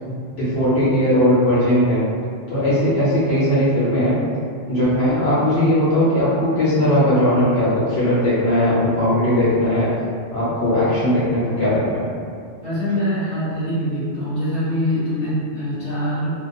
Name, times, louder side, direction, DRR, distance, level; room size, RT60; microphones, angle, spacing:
voice 1, 0.4-2.0 2.5-4.2 4.7-9.9 10.3-12.0, left 1 dB, 65° left, -10 dB, 0.8 m, -18 dB
voice 2, 12.6-16.3, equal, 5° left, -13 dB, 0.9 m, -24 dB
2.3 x 2.2 x 2.5 m, 2.3 s
omnidirectional pair, 1.2 m